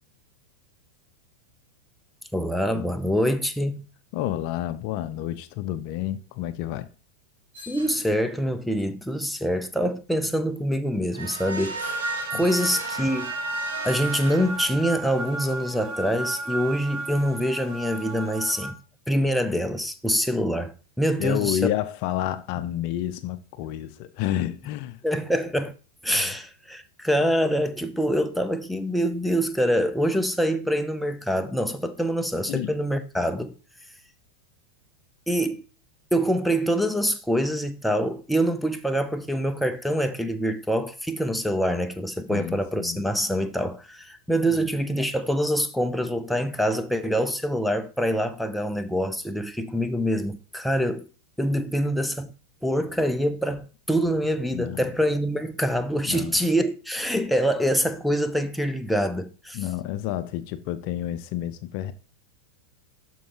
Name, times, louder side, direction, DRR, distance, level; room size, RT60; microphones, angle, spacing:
voice 1, 2.3-3.9 7.7-12.0 12.3-13.3 13.8-18.8 19.1-21.6 25.0-25.7 26.0-33.5 35.3-35.6 36.1-51.1 51.4-52.3 52.6-59.6, equal, ahead, 0.6 m, -25 dB
voice 2, 4.1-6.9 12.3-12.4 21.2-25.0 26.1-26.3 32.5-32.7 42.3-43.0 44.5-44.7 54.5-54.8 56.1-56.4 59.5-61.9, left 12 dB, 45° left, 0.5 m, -30 dB
sound 1, 7.5-8.3 11.1-15.0, right 3 dB, 65° right, 2.3 m, -35 dB
sound 2, 11.8-18.7, right 2 dB, 30° right, 1.2 m, -34 dB
12.5 x 4.5 x 2.9 m
figure-of-eight pair, 90°, 0 cm